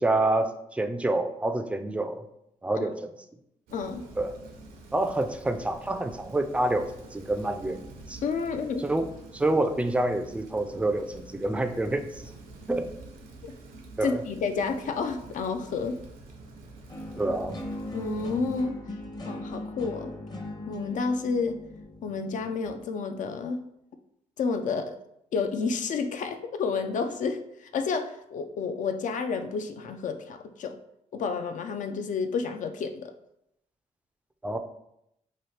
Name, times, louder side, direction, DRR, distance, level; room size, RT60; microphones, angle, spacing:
voice 1, 0.0-2.2 2.6-3.1 4.2-4.3 4.9-7.8 8.1-8.2 8.8-9.1 9.3-12.3 12.7-12.9 14.0-14.2 17.2-17.6 34.4-34.6, right 2 dB, 10° right, 8 dB, 0.3 m, -27 dB
voice 2, 3.7-4.0 8.2-8.8 13.4-13.5 14.0-16.0 17.9-18.8 19.3-20.1 20.7-21.6 22.0-23.6 24.4-25.0 25.3-30.8 31.1-33.1, left 5 dB, 60° left, 8 dB, 0.4 m, -30 dB
Rain, 3.7-18.6, right 2 dB, 85° right, 0.6 m, -48 dB
sound 1, 16.9-22.9, left 1 dB, 30° left, 0.7 m, -39 dB
2.9 x 2.4 x 3.2 m, 0.80 s
supercardioid pair, 55°, 15 cm